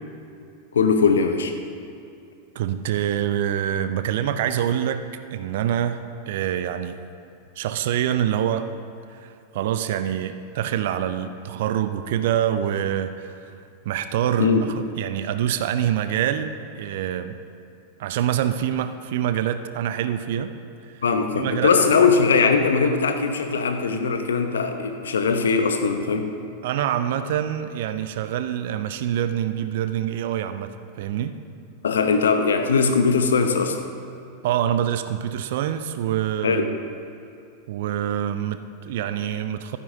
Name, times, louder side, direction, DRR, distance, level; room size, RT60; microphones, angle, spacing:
voice 1, 0.7-1.5 14.4-14.7 21.0-26.3 31.8-33.8 36.4-36.7, left 5 dB, 65° left, 6 dB, 0.9 m, -20 dB
voice 2, 2.5-5.0 5.3-7.0 7.6-8.7 9.1-13.5 13.9-17.4 18.0-20.6 20.9-21.0 21.3-22.0 26.6-31.4 34.4-36.7 37.7-39.8, right 10 dB, 55° right, 11 dB, 0.5 m, -26 dB
15.0 x 12.5 x 2.7 m, 2.5 s
figure-of-eight pair, 90°, 0 cm